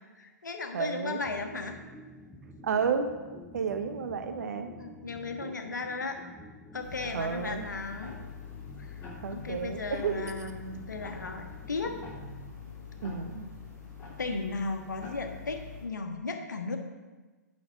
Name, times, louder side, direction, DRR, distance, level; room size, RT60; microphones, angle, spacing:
voice 1, 0.2-1.8 4.8-6.2 6.7-8.2 8.8-9.0 9.3-12.0 14.2-16.8, left 3 dB, 80° left, 4 dB, 1.2 m, -36 dB
voice 2, 0.7-1.2 2.6-3.1 3.5-4.7 5.4-5.5 7.1-7.6 9.2-10.2 13.0-13.5, right 6 dB, 65° right, 7 dB, 0.9 m, -31 dB
sound 1, 1.2-13.1, left 1 dB, 5° left, 0.6 m, -50 dB
sound 2, 6.8-15.9, left 6 dB, 25° left, 2.8 m, -45 dB
8.5 x 5.6 x 5.2 m, 1.3 s
figure-of-eight pair, 120°, 10 cm